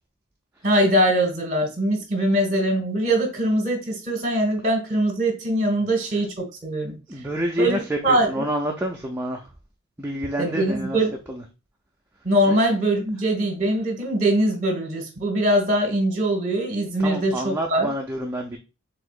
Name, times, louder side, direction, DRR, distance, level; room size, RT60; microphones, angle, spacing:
voice 1, 0.6-7.0 7.6-8.4 10.4-11.1 12.2-17.9, right 1 dB, 35° right, 3 dB, 1.4 m, -22 dB
voice 2, 7.1-9.5 10.0-11.0 11.3-11.4 12.5-12.6 17.0-18.6, right 1 dB, 10° right, 0 dB, 0.4 m, -28 dB
4.8 x 3.6 x 2.4 m, 0.29 s
head